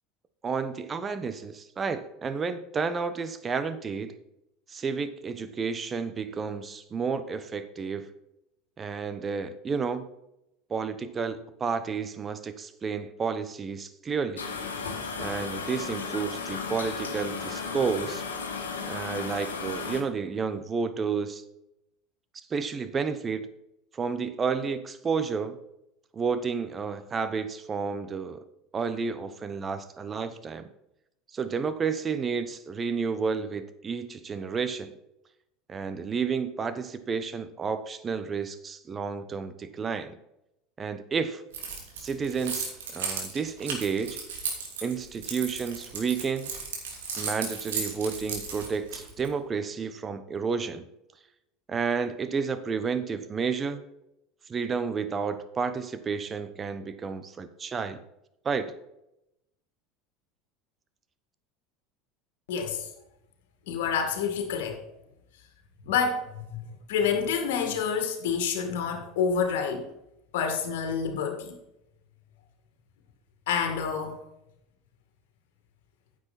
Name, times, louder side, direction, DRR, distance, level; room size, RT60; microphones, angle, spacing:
voice 1, 0.4-4.1 4.7-8.1 8.8-10.1 10.7-14.5 15.2-18.2 18.9-21.4 22.5-23.5 23.9-25.6 26.1-28.4 28.7-30.7 31.3-34.9 35.7-40.2 40.8-41.4 42.0-44.2 44.8-46.5 47.2-50.8 51.7-53.8 54.5-58.0 58.4-58.7, right 5 dB, 30° right, 11 dB, 1.1 m, -31 dB
sound 1, 14.4-20.0, left 5 dB, 85° left, 1.6 m, -34 dB
Keys jangling, 41.5-49.3, right 5 dB, 80° right, 2.8 m, -35 dB
voice 2, 62.5-62.9 63.7-64.8 65.9-66.6 66.9-69.9 70.3-71.5 73.5-74.2, left 6 dB, 70° left, 5 dB, 2.2 m, -28 dB
9.8 x 7.7 x 4.3 m, 0.84 s
hypercardioid pair, 80°, 0 cm